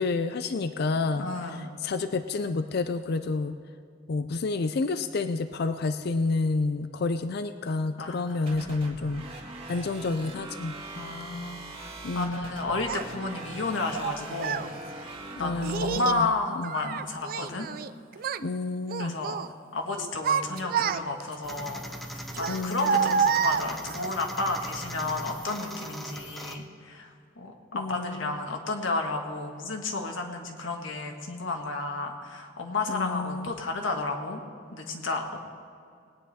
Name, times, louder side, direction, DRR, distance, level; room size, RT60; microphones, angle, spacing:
voice 1, 0.0-1.3 1.8-3.6 4.1-9.3 9.7-10.8 12.0-12.5 15.4-16.7 18.4-19.2 22.5-23.2 27.7-28.3 32.9-33.5, left 3 dB, 55° left, 10 dB, 0.4 m, -29 dB
voice 2, 1.2-1.7 8.0-8.6 10.9-14.7 14.9-15.1 15.4-17.7 19.0-19.3 19.7-27.1 27.4-34.4 34.7-35.4, left 3 dB, 75° left, 2 dB, 1.5 m, -32 dB
sound 1, 8.5-16.0, right 2 dB, 30° right, 1.9 m, -42 dB
Child speech kid speaking, 12.9-13.0 13.9-14.7 15.6-16.2 16.6-17.9 18.2-18.5 18.9-19.5 20.0-21.3 22.3-24.1, right 7 dB, 50° right, 0.4 m, -28 dB
sound 2, 21.4-26.6, equal, ahead, 0.8 m, -40 dB
19.5 x 9.5 x 4.2 m, 2.4 s
head